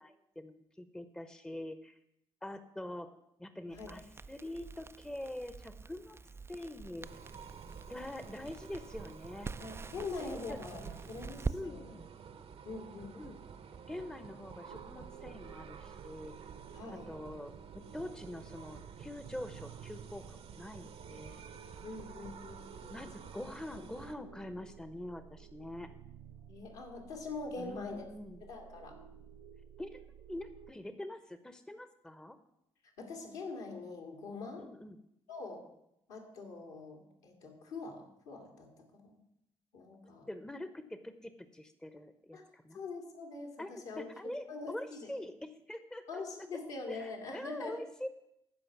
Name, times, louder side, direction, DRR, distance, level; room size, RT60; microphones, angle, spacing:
voice 1, 0.0-2.0 2.4-3.1 3.4-6.2 6.5-7.2 7.9-9.5 10.2-10.9 11.5-12.0 13.1-13.4 13.9-16.4 16.9-21.4 22.9-25.9 27.6-28.4 29.8-30.0 30.3-32.4 34.6-35.0 40.3-42.8 43.6-46.0 46.4-46.5 46.9-48.1, left 1 dB, 5° left, 11 dB, 0.8 m, -45 dB
Crackle, 3.7-11.6, right 4 dB, 20° right, 0.3 m, -45 dB
sound 1, 7.0-24.1, right 7 dB, 50° right, 0.8 m, -51 dB
voice 2, 9.6-11.9 12.6-13.2 16.7-17.1 21.8-23.0 26.5-28.1 28.4-29.0 33.0-34.7 35.3-35.6 36.1-39.2 39.7-40.3 42.3-42.4 42.7-44.1 44.5-45.1 46.1-47.9, left 3 dB, 70° left, 1 dB, 2.1 m, -44 dB
sound 2, 14.7-30.7, right 9 dB, 70° right, 0.5 m, -54 dB
14.5 x 5.2 x 6.0 m, 0.80 s
figure-of-eight pair, 40°, 13 cm